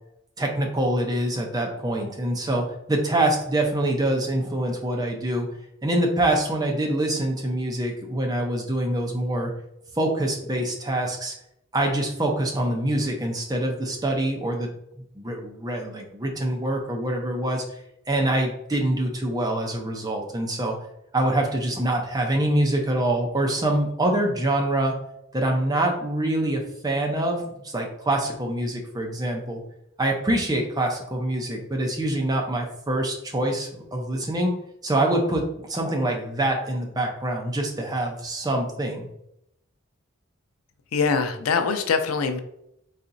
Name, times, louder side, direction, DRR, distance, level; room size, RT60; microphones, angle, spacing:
voice 1, 0.4-5.5 5.8-9.5 10.0-11.3 11.7-14.7 15.1-17.6 18.1-20.8 21.1-25.0 25.3-29.6 30.0-34.5 34.8-39.1, right 1 dB, 20° right, 1 dB, 0.6 m, -25 dB
voice 2, 40.9-42.4, left 5 dB, 90° left, 8 dB, 0.4 m, -23 dB
4.0 x 2.8 x 2.5 m, 0.78 s
head